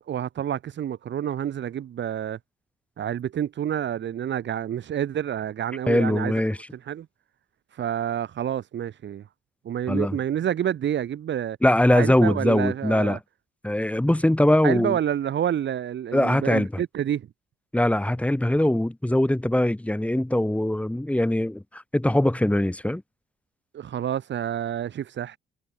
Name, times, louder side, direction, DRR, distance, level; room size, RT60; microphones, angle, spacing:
voice 1, 0.0-2.4 3.0-6.4 6.9-7.1 7.7-9.2 9.7-11.6 11.9-13.2 14.6-17.3 23.7-25.4, right 10 dB, 65° right, 7.1 m, -28 dB
voice 2, 5.9-6.6 9.9-10.2 11.6-13.2 13.6-15.0 16.1-16.7 17.7-23.0, left 1 dB, 5° left, 3.2 m, -22 dB
cardioid pair, 90°, 20 cm